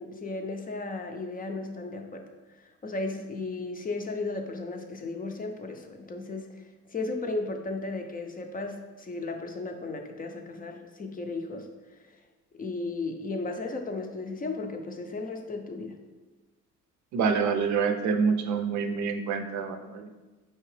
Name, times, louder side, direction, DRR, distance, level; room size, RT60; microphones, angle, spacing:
voice 1, 0.0-2.3 2.6-6.6 6.9-11.7 12.1-12.2 12.6-16.0, left 3 dB, 30° left, 5 dB, 0.4 m, -35 dB
voice 2, 17.1-20.1, right 5 dB, 70° right, 6 dB, 0.5 m, -27 dB
4.5 x 2.9 x 3.2 m, 1.2 s
cardioid pair, 90°, 30 cm